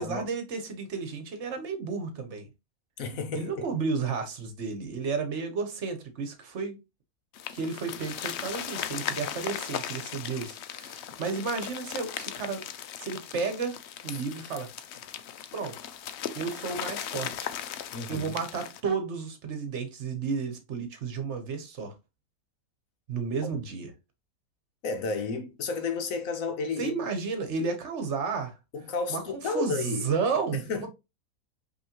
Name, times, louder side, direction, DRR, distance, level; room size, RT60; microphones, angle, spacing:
voice 1, 0.0-2.5 3.3-6.8 7.5-12.6 13.0-14.7 15.5-15.9 16.3-21.9 23.1-23.9 26.8-28.6 29.1-30.9, right 5 dB, 50° right, 1.2 m, -32 dB
voice 2, 3.0-3.7 14.1-14.2 17.9-18.4 24.8-26.9 28.7-30.1 30.5-30.9, left 4 dB, 60° left, 1.2 m, -32 dB
sound 1, 7.3-18.8, left 10 dB, 90° left, 0.5 m, -37 dB
5.5 x 3.0 x 2.9 m
omnidirectional pair, 1.7 m